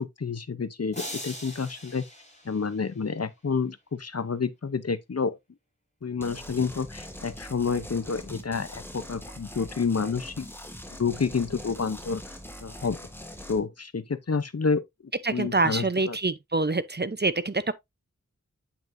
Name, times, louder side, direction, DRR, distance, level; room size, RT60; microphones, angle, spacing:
voice 1, 0.0-2.0 2.4-5.4 6.0-10.5 11.0-12.2 12.6-13.0 13.5-14.8 15.3-16.2, left 5 dB, 55° left, 0.8 m, -29 dB
sound 1, 0.9-3.2, equal, 20° left, 3.5 m, -41 dB
sound 2, 6.2-13.6, equal, 5° left, 1.8 m, -42 dB
voice 2, 15.2-17.7, right 3 dB, 35° right, 0.7 m, -26 dB
9.1 x 5.8 x 2.6 m
wide cardioid pair, 40°, 30 cm